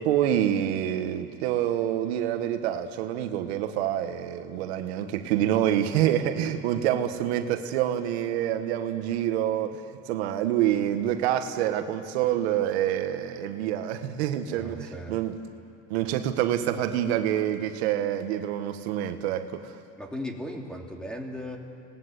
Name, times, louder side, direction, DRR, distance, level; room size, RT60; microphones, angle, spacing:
voice 1, 0.0-15.4 15.9-19.7, right 11 dB, 85° right, 7 dB, 1.6 m, -27 dB
voice 2, 14.5-15.2 20.0-21.6, left 1 dB, 5° left, 1 dB, 3.0 m, -37 dB
28.5 x 19.0 x 8.3 m, 2.5 s
supercardioid pair, 120°, 32 cm